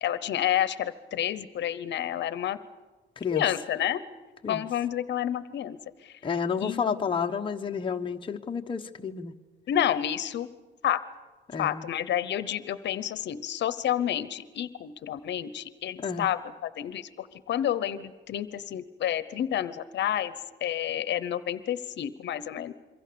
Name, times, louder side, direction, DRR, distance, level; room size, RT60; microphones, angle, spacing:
voice 1, 0.0-2.6 3.3-4.0 4.5-6.2 6.6-7.0 9.7-10.5 10.8-11.0 11.6-20.3 20.6-22.7, left 11 dB, 70° left, 14 dB, 0.9 m, -30 dB
voice 2, 6.2-9.3 11.5-11.8 16.0-16.3, left 6 dB, 25° left, 3 dB, 1.1 m, -30 dB
27.5 x 23.5 x 6.9 m, 1.3 s
cardioid pair, 150°, 19 cm